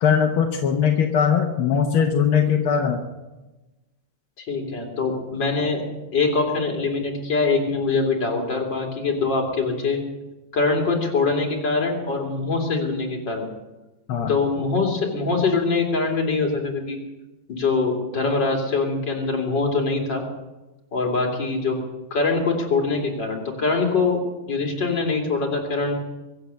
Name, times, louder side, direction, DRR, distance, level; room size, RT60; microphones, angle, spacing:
voice 1, 0.0-3.0 14.1-14.3, left 7 dB, 85° left, 2 dB, 2.0 m, -20 dB
voice 2, 4.4-5.8 6.1-10.0 10.5-13.5 14.3-17.0 17.5-20.2 20.9-21.8 22.1-24.2 24.5-25.9, left 4 dB, 60° left, 1 dB, 3.4 m, -23 dB
23.5 x 7.8 x 7.0 m, 1.1 s
omnidirectional pair, 2.2 m